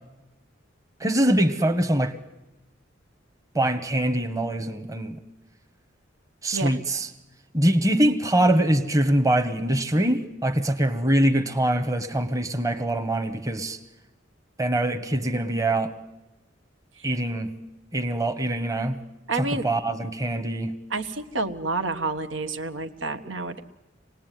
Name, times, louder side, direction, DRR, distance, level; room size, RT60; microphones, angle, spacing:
voice 1, 1.0-2.1 3.5-5.2 6.4-7.1 7.5-13.8 14.6-15.9 17.0-17.5 17.9-19.0 19.3-20.7, right 1 dB, 15° right, 1.1 m, -23 dB
voice 2, 19.3-19.6 20.9-23.6, right 3 dB, 85° right, 1.4 m, -29 dB
26.5 x 19.0 x 9.2 m
head